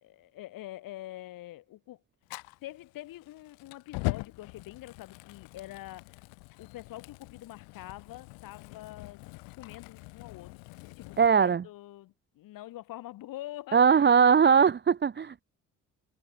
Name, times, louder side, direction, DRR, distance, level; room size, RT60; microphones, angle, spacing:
voice 1, 0.0-2.0 2.6-6.2 6.6-9.2 9.6-10.6 11.0-14.1, left 15 dB, 70° left, 1.7 m, -45 dB
Fire, 2.2-11.3, left 32 dB, 85° left, 2.2 m, -42 dB
voice 2, 11.2-11.6 13.7-15.4, right 6 dB, 30° right, 0.8 m, -20 dB
supercardioid pair, 65°, 35 cm